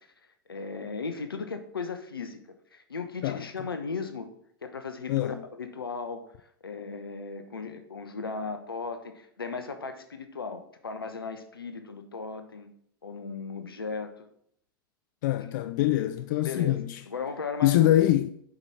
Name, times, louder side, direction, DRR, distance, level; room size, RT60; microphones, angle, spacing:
voice 1, 0.5-2.4 2.7-4.3 4.6-6.3 6.6-12.7 13.0-14.3 16.4-16.8 17.1-18.0, left 4 dB, 85° left, 1.1 m, -36 dB
voice 2, 5.1-5.4 15.2-17.0 17.6-18.3, left 14 dB, 55° left, 0.4 m, -24 dB
7.8 x 5.9 x 4.8 m
figure-of-eight pair, 95°, 12 cm